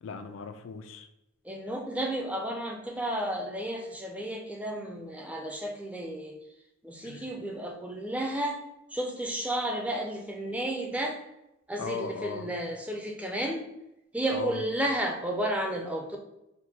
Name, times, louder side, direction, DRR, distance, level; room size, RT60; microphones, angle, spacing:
voice 1, 0.0-1.1 7.0-7.2 11.8-12.5 14.3-14.6, left 5 dB, 70° left, 8 dB, 0.4 m, -37 dB
voice 2, 1.4-6.4 6.8-8.6 8.9-11.2 11.7-13.7 14.1-16.2, right 1 dB, 5° right, 1 dB, 0.4 m, -32 dB
4.4 x 2.2 x 4.0 m, 0.90 s
head